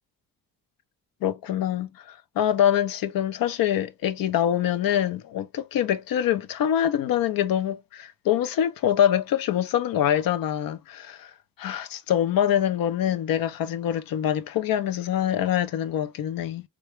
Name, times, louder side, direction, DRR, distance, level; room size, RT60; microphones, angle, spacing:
voice 1, 1.2-11.3 11.6-16.6, left 10 dB, 70° left, 0.6 m, -25 dB
3.4 x 2.3 x 3.2 m
cardioid pair, 110°, 36 cm